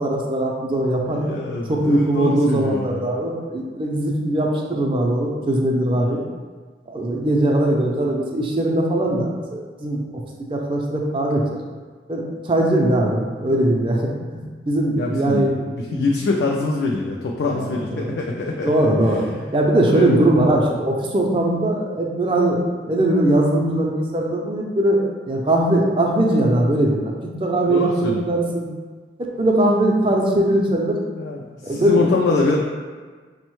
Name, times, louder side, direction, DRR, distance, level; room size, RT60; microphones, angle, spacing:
voice 1, 0.0-1.3 1.7-6.2 6.9-10.0 10.5-11.4 12.1-14.4 14.7-16.0 17.5-18.1 18.6-27.1 27.4-28.7 29.2-31.0 31.6-32.0, right 1 dB, 30° right, 0 dB, 0.4 m, -20 dB
voice 2, 1.1-3.2 5.9-6.3 15.0-18.8 19.0-19.2 19.8-20.2 27.7-28.2 31.2-32.6, left 3 dB, 75° left, -1 dB, 0.3 m, -24 dB
5.2 x 2.1 x 3.0 m, 1.4 s
head